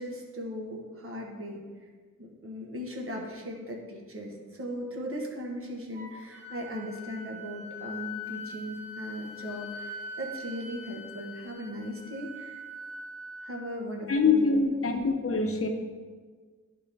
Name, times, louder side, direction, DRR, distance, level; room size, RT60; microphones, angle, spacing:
voice 1, 0.0-1.6 2.2-12.6 13.4-14.5 14.8-15.0, equal, 45° right, -1 dB, 1.3 m, -38 dB
Wind instrument woodwind instrument, 5.9-13.7, left 2 dB, 10° right, 2.2 m, -42 dB
voice 2, 14.1-15.7, left 4 dB, 50° left, 3 dB, 0.8 m, -24 dB
10.5 x 4.4 x 3.4 m, 1.5 s
wide cardioid pair, 105°, 30 cm